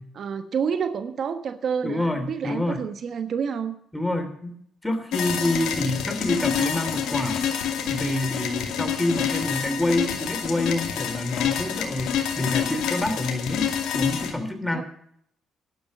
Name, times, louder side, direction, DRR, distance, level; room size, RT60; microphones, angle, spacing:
voice 1, 0.1-3.7 14.7-14.8, right 6 dB, 60° right, 9 dB, 1.1 m, -28 dB
voice 2, 1.8-2.8 3.9-4.6 4.8-7.4 7.9-13.7 13.9-14.8, left 1 dB, 10° left, 8 dB, 2.7 m, -27 dB
sound 1, 5.1-14.3, left 8 dB, 85° left, 2.3 m, -27 dB
11.5 x 10.5 x 7.2 m, 0.68 s
cardioid pair, 90°, 0 cm